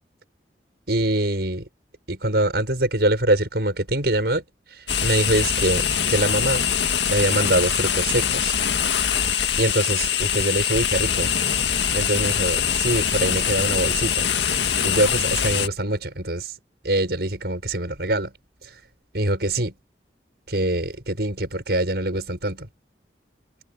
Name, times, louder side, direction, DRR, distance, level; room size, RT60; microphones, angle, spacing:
voice 1, 0.9-1.7 2.1-4.4 4.7-6.7 7.0-8.5 8.9-9.0 9.6-11.3 11.9-14.3 14.8-16.6 16.8-18.3 18.6-18.8 19.1-19.7 20.5-22.7, right 1 dB, 65° right, 6.4 m, -24 dB
sound 1, 4.9-15.7, left 8 dB, 90° left, 2.0 m, -23 dB
head